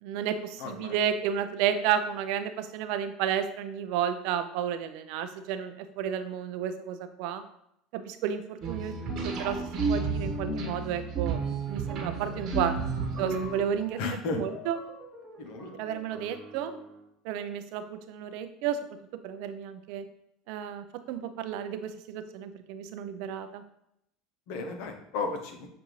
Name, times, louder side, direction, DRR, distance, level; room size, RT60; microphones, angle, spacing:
voice 1, 0.0-7.4 7.9-11.4 11.7-12.8 13.2-14.0 14.3-14.8 15.8-16.7 17.2-18.8 19.2-20.0 20.5-23.6, right 9 dB, 70° right, 10 dB, 0.4 m, -32 dB
voice 2, 0.6-1.0 14.0-14.4 15.4-15.7 24.5-25.7, left 3 dB, 70° left, 4 dB, 0.8 m, -34 dB
sound 1, 8.6-13.8, right 4 dB, 50° right, 1.0 m, -31 dB
sound 2, 11.8-17.1, right 1 dB, 25° right, 0.9 m, -47 dB
6.7 x 2.6 x 3.1 m, 0.77 s
supercardioid pair, 90°, 0 cm